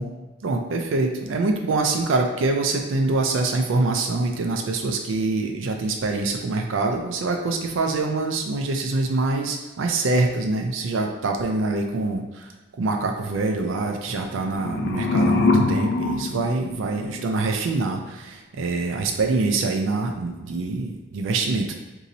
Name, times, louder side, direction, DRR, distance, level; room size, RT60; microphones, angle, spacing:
voice 1, 0.4-12.5 12.8-21.7, right 3 dB, 70° right, 3 dB, 0.4 m, -25 dB
sound 1, 14.2-17.3, left 3 dB, 55° left, 0.3 m, -23 dB
2.7 x 2.6 x 4.0 m, 1.1 s
head